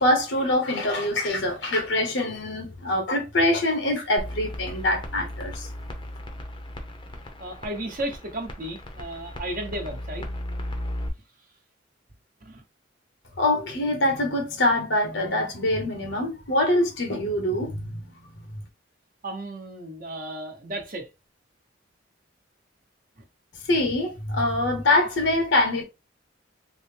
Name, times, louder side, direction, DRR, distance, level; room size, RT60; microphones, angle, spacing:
voice 1, 0.0-5.7 13.4-18.0 23.7-25.8, left 1 dB, 80° left, 1.0 m, -24 dB
sound 1, 4.2-11.1, left 1 dB, 25° left, 0.6 m, -36 dB
voice 2, 7.4-10.3 12.4-12.6 19.2-21.1 23.2-23.3, right 1 dB, 45° right, 0.9 m, -34 dB
3.9 x 2.1 x 3.3 m
head